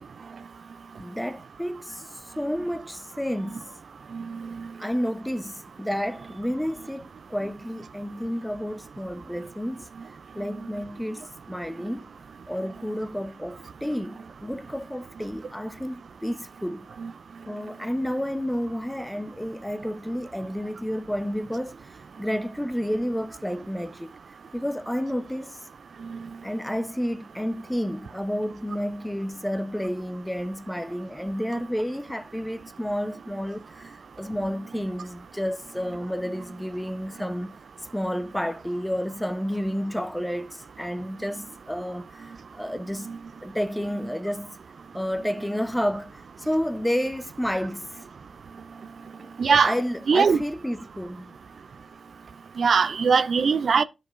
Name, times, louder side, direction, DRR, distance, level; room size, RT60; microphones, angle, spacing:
voice 1, 1.0-3.7 4.8-9.9 10.3-12.1 12.5-16.9 17.5-21.9 22.2-24.1 24.5-25.6 26.4-37.6 37.9-43.1 43.4-44.6 44.9-48.0 49.2-49.3 49.6-51.3, equal, 5° left, 0.8 m, -30 dB
voice 2, 49.4-49.7 50.1-50.4 52.6-53.8, right 5 dB, 70° right, 0.4 m, -20 dB
12.5 x 4.9 x 2.5 m
cardioid pair, 50°, 0 cm